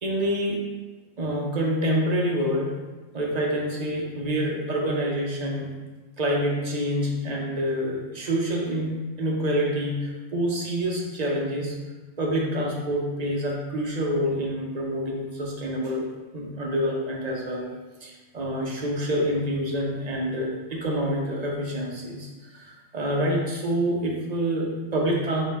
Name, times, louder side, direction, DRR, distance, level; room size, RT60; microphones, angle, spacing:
voice 1, 0.0-0.6 1.2-2.7 3.1-5.7 6.2-11.7 12.2-16.1 16.3-17.7 18.0-25.4, equal, 45° right, -2 dB, 0.7 m, -27 dB
3.9 x 2.7 x 4.0 m, 1.2 s
omnidirectional pair, 1.1 m